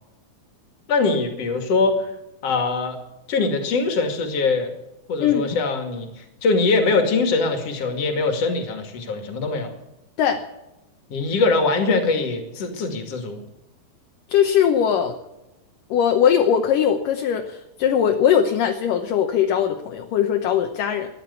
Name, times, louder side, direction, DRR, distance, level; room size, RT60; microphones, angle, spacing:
voice 1, 0.9-2.1 2.4-3.0 3.3-4.7 5.1-9.7 11.1-13.4, left 3 dB, 45° left, 5 dB, 3.0 m, -22 dB
voice 2, 14.3-15.2 15.9-21.1, left 8 dB, 70° left, 4 dB, 2.4 m, -20 dB
15.0 x 10.5 x 8.4 m, 0.92 s
omnidirectional pair, 4.2 m